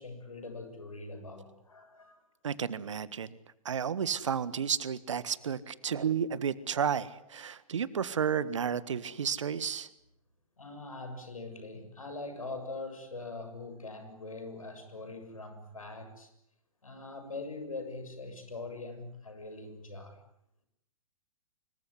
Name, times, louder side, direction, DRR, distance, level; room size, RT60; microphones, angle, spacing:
voice 1, 0.0-2.2 10.6-16.3 16.8-20.2, left 3 dB, 70° left, 8 dB, 7.2 m, -42 dB
voice 2, 2.4-3.4 3.6-9.9, right 7 dB, 60° right, 17 dB, 1.6 m, -32 dB
25.5 x 23.0 x 9.8 m, 0.75 s
figure-of-eight pair, 115°, 18 cm